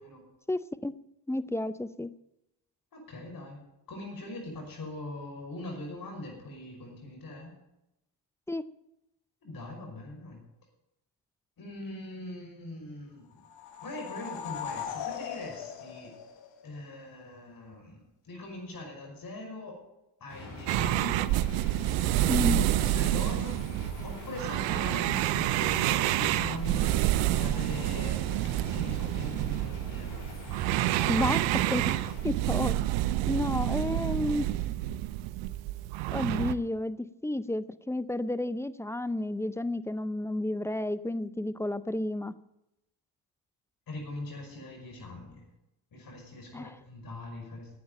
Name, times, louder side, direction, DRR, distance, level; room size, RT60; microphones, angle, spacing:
voice 1, 0.5-0.9 1.3-2.1 8.5-8.6 22.3-22.6 31.1-32.0 32.2-32.8 33.3-34.5 36.1-42.3 46.5-46.8, left 1 dB, 5° left, 16 dB, 0.6 m, -31 dB
voice 2, 2.9-3.6 3.9-7.5 9.4-10.4 11.6-13.4 13.8-16.1 16.6-19.8 20.2-21.4 22.2-23.6 24.0-26.9 27.4-28.2 28.7-30.3 43.9-45.4 45.9-47.7, left 2 dB, 50° left, 2 dB, 5.7 m, -41 dB
sound 1, 13.4-16.9, left 9 dB, 85° left, 1.6 m, -39 dB
sound 2, 20.3-32.2, left 2 dB, 70° left, 6.7 m, -44 dB
sound 3, 20.7-36.5, right 15 dB, 90° right, 0.7 m, -28 dB
11.0 x 8.6 x 8.9 m, 0.89 s
supercardioid pair, 70°, 43 cm